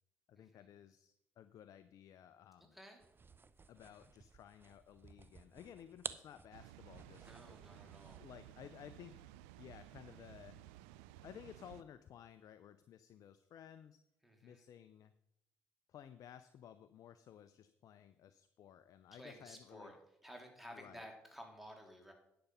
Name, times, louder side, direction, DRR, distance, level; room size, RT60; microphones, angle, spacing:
voice 1, 0.3-2.8 3.7-7.3 8.2-9.3 9.6-10.6 11.2-14.0 14.4-15.1 15.9-19.9 20.7-21.1, left 9 dB, 60° left, 12 dB, 0.5 m, -56 dB
voice 2, 2.7-3.0 7.2-8.2 14.2-14.6 19.1-20.0 20.2-22.1, equal, 5° right, 2 dB, 3.2 m, -54 dB
sound 1, 3.0-8.4, right 4 dB, 35° right, 0.7 m, -52 dB
Water, 6.5-11.8, right 13 dB, 85° right, 0.4 m, -56 dB
10.0 x 7.0 x 5.5 m, 0.79 s
hypercardioid pair, 50°, 7 cm